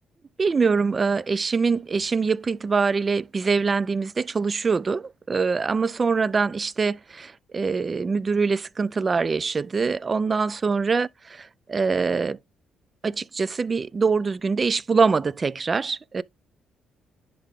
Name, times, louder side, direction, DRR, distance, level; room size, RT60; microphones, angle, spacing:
voice 1, 0.4-12.4 13.0-16.2, right 4 dB, 35° right, 0.4 m, -24 dB
10.0 x 3.6 x 3.5 m
cardioid pair, 90°, 0 cm